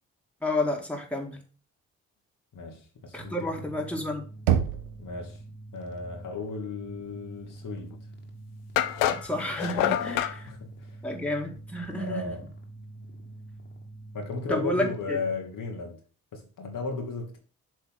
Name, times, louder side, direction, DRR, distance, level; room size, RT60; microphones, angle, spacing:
voice 1, 0.4-1.4 3.1-4.2 9.1-10.5 11.0-12.2 14.5-15.2, left 1 dB, 5° left, 2.1 m, -30 dB
voice 2, 2.5-3.9 5.0-5.4 5.7-8.0 10.5-11.0 12.0-12.4 14.1-16.0 16.3-17.4, left 4 dB, 50° left, 1.6 m, -35 dB
sound 1, 3.2-15.4, right 2 dB, 25° left, 1.9 m, -45 dB
Knock, 4.5-5.4, right 10 dB, 80° right, 0.7 m, -26 dB
sound 2, 7.9-8.0 8.8-10.4, left 12 dB, 85° left, 0.6 m, -27 dB
7.4 x 3.4 x 5.6 m
hypercardioid pair, 40°, 40 cm